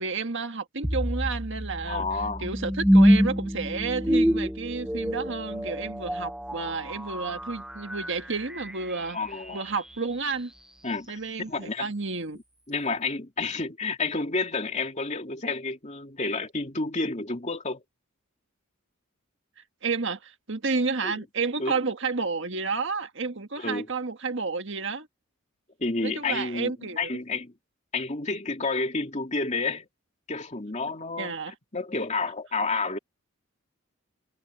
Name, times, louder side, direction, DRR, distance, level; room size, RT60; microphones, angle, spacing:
voice 1, 0.0-2.1 2.4-9.2 9.5-10.5 11.1-12.4 19.8-25.1 26.0-27.1 31.2-31.5, right 4 dB, 60° right, 1.7 m, -31 dB
sound 1, 0.8-9.9, equal, 5° right, 0.7 m, -26 dB
voice 2, 1.9-2.5 9.1-9.6 10.8-11.9 12.7-17.8 21.0-21.2 21.6-21.7 23.6-23.9 25.8-26.7 27.0-27.5 27.9-29.9 30.3-33.0, left 3 dB, 35° left, 2.7 m, -30 dB
head